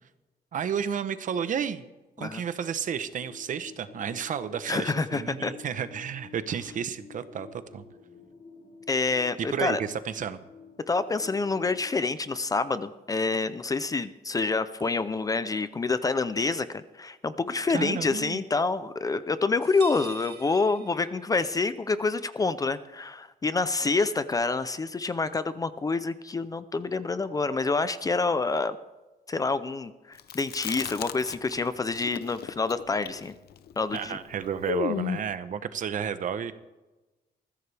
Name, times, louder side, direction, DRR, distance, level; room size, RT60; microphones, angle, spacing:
voice 1, 0.5-1.8 2.2-7.8 9.4-10.4 17.7-18.4 33.9-36.5, right 7 dB, 50° right, 12 dB, 0.9 m, -32 dB
sound 1, 2.8-11.9, left 5 dB, 45° left, 4.5 m, -50 dB
voice 2, 4.7-5.5 8.9-9.8 10.9-28.8 29.3-33.3 33.8-34.2, left 3 dB, 20° left, 13 dB, 0.5 m, -27 dB
sound 2, 19.6-21.6, right 8 dB, 75° right, 1.5 m, -45 dB
Chewing mastication, 30.2-31.7 31.9-35.3, left 10 dB, 70° left, 0.7 m, -34 dB
20.5 x 15.0 x 3.4 m, 1.1 s
wide cardioid pair, 175°, 17 cm